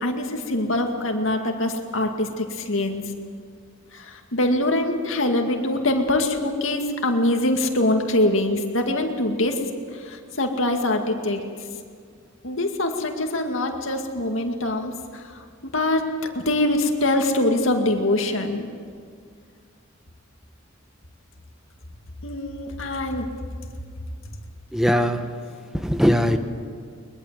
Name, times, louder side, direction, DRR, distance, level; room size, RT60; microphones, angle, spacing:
voice 1, 0.0-3.0 3.9-9.6 9.9-11.4 12.4-15.2 15.6-18.7 22.2-23.3, left 1 dB, 75° left, 3 dB, 2.2 m, -24 dB
voice 2, 24.7-25.3 25.7-26.4, equal, ahead, 7 dB, 1.1 m, -20 dB
22.0 x 21.5 x 7.5 m, 2.1 s
head